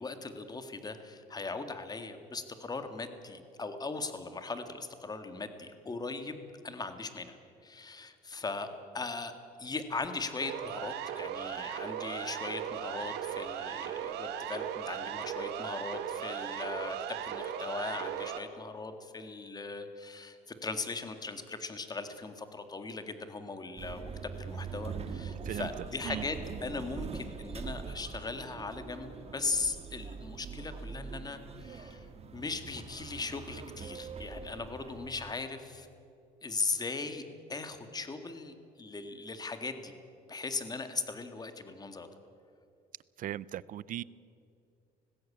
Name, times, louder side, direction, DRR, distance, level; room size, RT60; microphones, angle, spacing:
voice 1, 0.0-6.4 6.6-7.4 7.6-8.7 8.9-9.3 9.6-24.1 24.4-32.1 32.3-35.9 36.4-37.2 37.5-39.9 40.3-42.1, left 3 dB, 25° left, 8 dB, 1.9 m, -39 dB
Siren, 10.4-18.4, right 9 dB, 85° right, 1.5 m, -37 dB
sound 1, 23.8-35.3, right 5 dB, 35° right, 1.6 m, -43 dB
voice 2, 43.2-44.0, right 12 dB, 55° right, 21 dB, 0.5 m, -37 dB
19.5 x 16.0 x 8.6 m, 2.5 s
cardioid pair, 110°, 17 cm